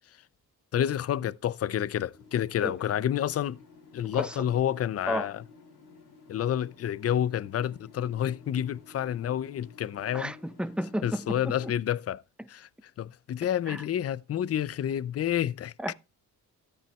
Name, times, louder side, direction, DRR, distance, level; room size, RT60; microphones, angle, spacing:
voice 1, 0.7-3.6 3.9-5.4 6.3-10.3 11.0-12.2 12.5-12.7 13.0-15.9, left 10 dB, 40° left, 0.5 m, -29 dB
sound 1, 2.1-11.7, left 4 dB, 85° left, 2.6 m, -53 dB
voice 2, 10.1-11.4 11.6-11.7 13.7-13.8 15.8-15.9, right 1 dB, 5° right, 0.6 m, -32 dB
13.5 x 8.8 x 2.3 m
cardioid pair, 65°, 37 cm